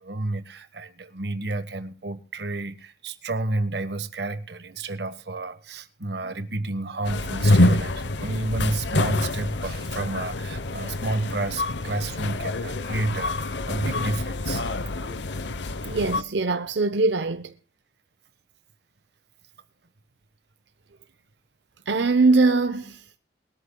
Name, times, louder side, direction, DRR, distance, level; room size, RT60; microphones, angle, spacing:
voice 1, 0.0-14.7, right 2 dB, 70° right, 1.3 m, -30 dB
sound 1, 7.0-16.2, left 2 dB, 90° left, 0.9 m, -26 dB
voice 2, 15.9-17.5 21.9-23.0, right 3 dB, 90° right, 0.8 m, -22 dB
22.0 x 13.0 x 2.3 m
head